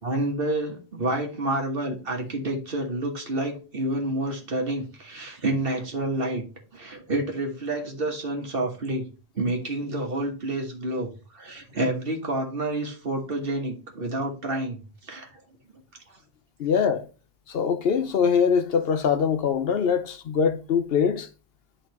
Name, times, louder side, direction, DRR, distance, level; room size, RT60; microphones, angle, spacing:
voice 1, 0.0-6.5 6.7-9.0 9.3-15.3, right 1 dB, 60° right, 1.6 m, -29 dB
voice 2, 16.6-17.1 17.5-21.3, left 6 dB, 65° left, 0.9 m, -23 dB
10.0 x 3.9 x 3.0 m
omnidirectional pair, 1.1 m